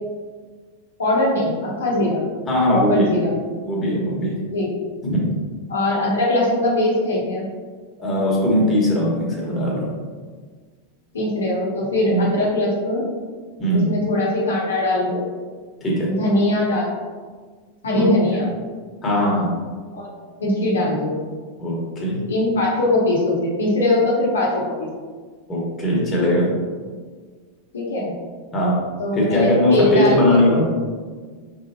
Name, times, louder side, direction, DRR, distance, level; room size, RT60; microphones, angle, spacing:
voice 1, 1.0-2.2 2.7-3.3 4.5-4.7 5.7-7.5 11.1-13.1 13.7-15.2 16.0-16.9 17.8-18.5 19.9-20.1 20.4-21.2 22.3-24.9 27.7-28.1 29.0-30.2, left 1 dB, 70° left, -4 dB, 0.9 m, -21 dB
voice 2, 2.5-3.1 3.6-4.4 5.0-5.3 8.0-9.9 12.1-12.2 13.6-14.0 15.8-16.1 17.9-18.5 19.0-19.6 21.6-22.2 25.5-26.5 28.5-28.8 29.1-30.8, equal, 20° left, -5 dB, 1.4 m, -20 dB
4.6 x 3.7 x 2.7 m, 1.6 s
figure-of-eight pair, 90°, 0 cm